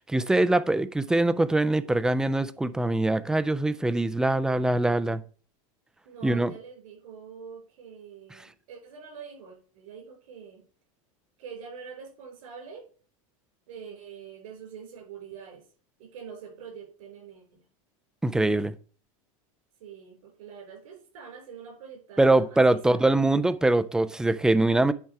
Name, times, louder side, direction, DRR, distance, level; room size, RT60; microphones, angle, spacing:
voice 1, 0.0-5.2 6.2-6.5 18.2-18.7 22.2-24.9, right 2 dB, 5° right, 0.3 m, -23 dB
voice 2, 6.0-10.6 11.4-12.8 13.7-15.6 16.0-17.6 19.8-23.0, right 6 dB, 85° right, 5.2 m, -45 dB
10.0 x 4.6 x 4.7 m
supercardioid pair, 155°, 17 cm